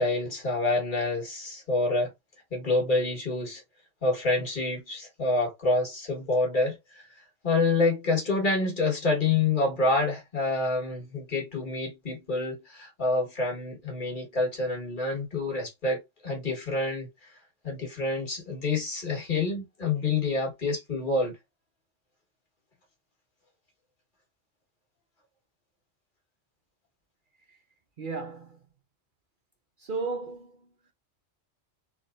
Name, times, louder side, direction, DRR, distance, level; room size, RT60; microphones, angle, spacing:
voice 1, 0.0-2.1 2.5-3.6 4.0-7.0 7.4-17.3 17.6-21.4, left 3 dB, 45° left, 1.6 m, -27 dB
voice 2, 28.0-28.6 29.8-30.9, right 4 dB, 50° right, 0.8 m, -35 dB
3.8 x 3.3 x 2.5 m
omnidirectional pair, 1.2 m